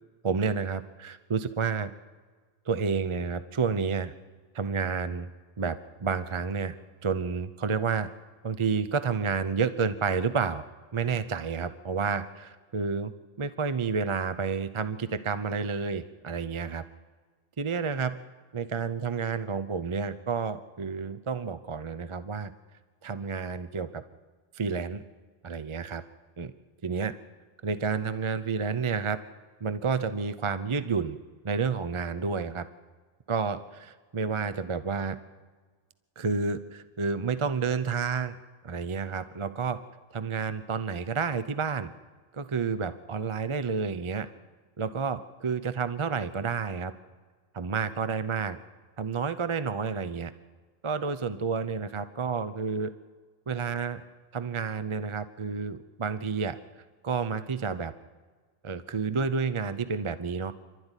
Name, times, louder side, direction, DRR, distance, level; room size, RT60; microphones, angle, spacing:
voice 1, 0.2-1.9 2.7-4.1 4.5-5.3 5.6-6.8 7.0-8.1 8.4-10.6 10.9-16.8 17.6-18.2 18.5-22.5 23.0-24.0 24.5-25.0 25.4-26.0 26.4-26.5 26.8-27.1 27.6-29.2 29.6-31.2 31.4-32.7 33.3-35.2 36.2-38.4 38.6-39.8 40.1-41.9 42.3-44.3 44.8-46.9 47.5-48.6 49.0-50.3 50.8-52.9 53.5-54.0 54.3-56.6 57.0-57.9 58.6-60.5, right 5 dB, 30° right, 13 dB, 0.6 m, -30 dB
27.0 x 12.5 x 9.8 m, 1.5 s
omnidirectional pair, 1.3 m